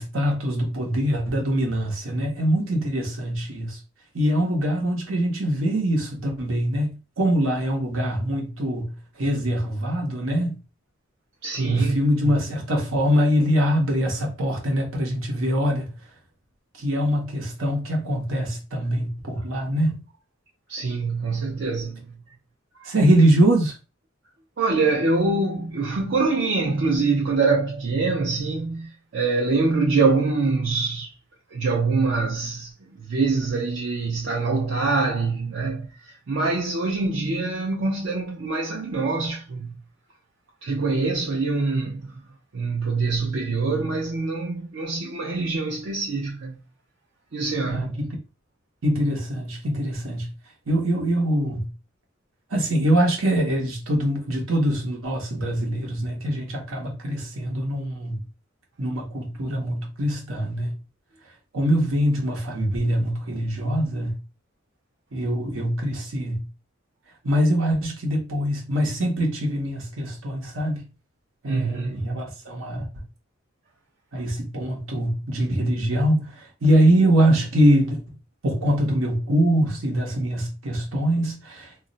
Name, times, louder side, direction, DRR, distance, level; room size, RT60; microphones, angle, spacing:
voice 1, 0.0-3.8 4.1-10.6 11.6-15.9 16.8-20.0 22.8-23.8 47.7-48.2 48.8-50.3 50.7-51.7 52.5-58.2 58.8-60.7 61.5-64.2 65.1-66.5 67.2-70.8 71.4-73.0 74.1-78.0 78.4-81.7, equal, 80° right, 0.9 m, -23 dB
voice 2, 11.4-12.0 12.3-12.4 20.7-22.2 22.8-22.9 24.6-31.1 31.5-32.7 33.0-35.9 36.3-39.8 40.6-42.0 42.5-46.6 47.3-47.9 71.5-72.2, right 3 dB, 60° right, 0.5 m, -24 dB
2.4 x 2.0 x 3.8 m
head